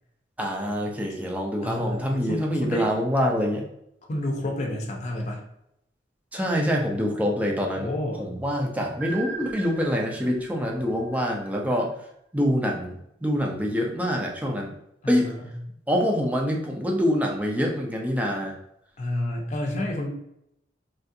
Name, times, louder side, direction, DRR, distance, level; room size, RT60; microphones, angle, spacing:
voice 1, 0.4-3.7 6.3-7.9 8.2-11.9 12.3-14.7 15.1-15.3 15.9-18.5, equal, 10° right, 0 dB, 0.4 m, -25 dB
voice 2, 1.6-2.9 4.1-5.4 7.8-8.3 15.0-15.6 19.0-20.1, left 1 dB, 40° left, 0 dB, 0.6 m, -30 dB
sound 1, 9.0-11.9, right 4 dB, 70° right, 0.5 m, -40 dB
3.3 x 2.4 x 2.6 m, 0.77 s
head